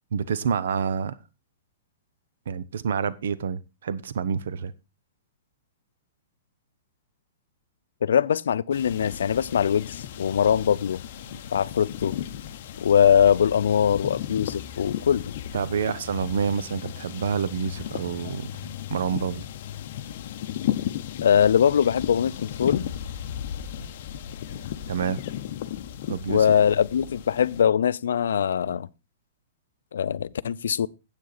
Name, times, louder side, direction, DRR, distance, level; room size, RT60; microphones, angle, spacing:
voice 1, 0.1-1.2 2.5-4.7 11.3-11.4 15.5-19.4 24.9-25.2 26.1-26.5, right 7 dB, 65° right, 0.7 m, -28 dB
voice 2, 8.0-11.0 11.5-12.1 12.8-15.3 21.2-22.9 26.3-28.9 29.9-30.9, left 8 dB, 85° left, 0.5 m, -22 dB
sound 1, 8.7-27.6, left 10 dB, 40° left, 0.7 m, -35 dB
9.4 x 8.2 x 4.0 m
hypercardioid pair, 180°, 0 cm